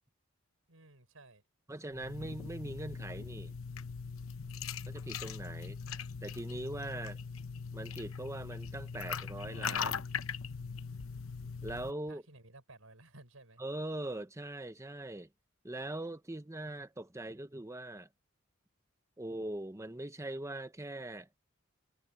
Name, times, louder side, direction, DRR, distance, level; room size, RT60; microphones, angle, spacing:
voice 1, 0.7-1.4 12.1-13.6, right 2 dB, 80° right, 5.5 m, -56 dB
voice 2, 1.7-3.5 4.8-5.8 6.2-7.2 7.7-10.0 11.6-12.2 13.6-15.3 15.6-18.1 19.2-21.3, right 1 dB, 15° right, 0.9 m, -41 dB
sound 1, 1.9-11.9, left 6 dB, 75° left, 0.9 m, -40 dB
head